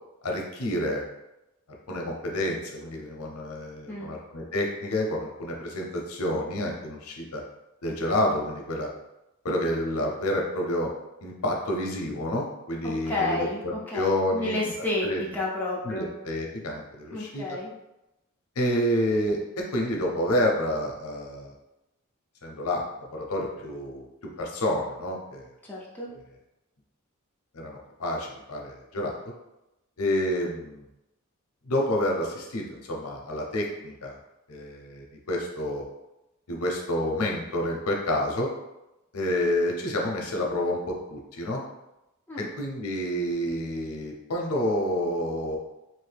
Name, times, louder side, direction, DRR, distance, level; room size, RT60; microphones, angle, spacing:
voice 1, 0.2-1.0 1.9-7.4 7.8-8.9 9.4-10.9 11.2-13.4 13.6-14.7 15.0-15.2 15.8-17.6 18.6-21.5 22.4-24.0 24.4-25.4 26.1-26.2 27.5-29.2 30.0-30.9 31.7-34.2 34.5-35.8 36.5-38.5 39.1-41.6 42.4-45.6, left 1 dB, 85° left, 0 dB, 0.7 m, -29 dB
voice 2, 12.8-16.1 17.1-17.7 25.6-26.1 42.3-42.5, left 2 dB, 10° left, -6 dB, 0.6 m, -31 dB
3.1 x 2.7 x 3.3 m, 0.94 s
head